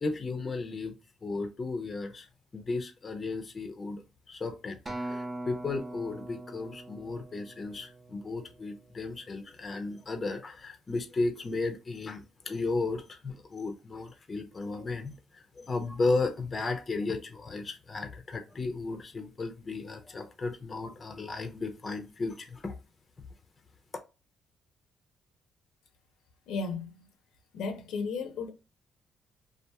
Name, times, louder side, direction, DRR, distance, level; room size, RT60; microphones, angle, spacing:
voice 1, 0.0-0.9 1.2-2.3 2.5-4.0 4.3-4.8 5.0-22.7, left 3 dB, 35° left, 0.6 m, -34 dB
Acoustic guitar, 4.9-9.3 9.9-10.1, right 1 dB, 20° right, 0.7 m, -42 dB
voice 2, 26.5-27.1 27.5-28.5, left 4 dB, 80° left, 0.7 m, -34 dB
2.8 x 2.4 x 2.2 m
cardioid pair, 90°, 0 cm